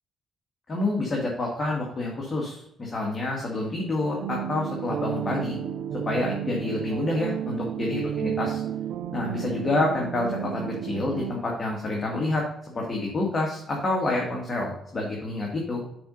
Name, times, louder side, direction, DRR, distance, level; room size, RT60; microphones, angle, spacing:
voice 1, 0.7-5.6 6.0-8.6 9.1-15.8, left 2 dB, 35° left, -1 dB, 1.8 m, -28 dB
sound 1, 4.2-11.3, right 9 dB, 80° right, 0.6 m, -32 dB
6.9 x 4.5 x 5.3 m, 0.79 s
cardioid pair, 90°, 0 cm